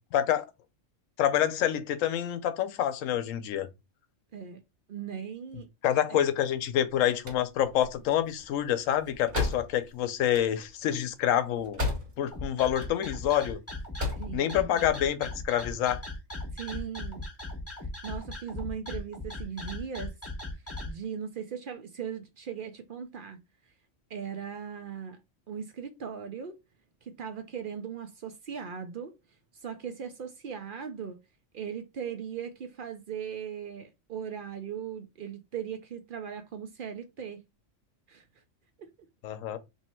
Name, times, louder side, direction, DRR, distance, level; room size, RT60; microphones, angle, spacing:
voice 1, 0.1-0.5 1.2-3.7 5.8-11.8 12.2-13.6 14.3-16.0 39.2-39.6, left 11 dB, 80° left, 1.0 m, -27 dB
voice 2, 4.3-4.6 4.9-5.7 6.1-6.2 14.2-14.8 16.5-17.2 17.8-20.2 20.9-23.4 24.1-25.2 25.5-26.6 27.0-29.2 29.5-31.2 31.5-37.4 38.1-38.2 38.8-38.9, right 7 dB, 60° right, 0.6 m, -38 dB
sound 1, 7.0-12.4 12.7-13.4 13.8-14.4, left 3 dB, 40° right, 1.3 m, -35 dB
sound 2, 12.3-20.9, left 2 dB, 15° left, 0.8 m, -38 dB
3.1 x 2.7 x 4.3 m
omnidirectional pair, 1.3 m